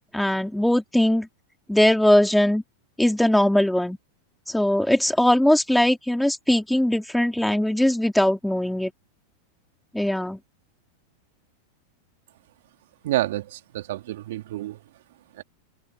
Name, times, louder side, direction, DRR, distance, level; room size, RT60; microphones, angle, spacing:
voice 1, 0.1-1.3 1.7-2.6 3.0-4.0 4.5-8.9 9.9-10.4, left 1 dB, 5° left, 3.2 m, -20 dB
voice 2, 13.0-14.8 15.4-15.5, right 15 dB, 65° right, 3.0 m, -28 dB
open air
hypercardioid pair, 100°, 0 cm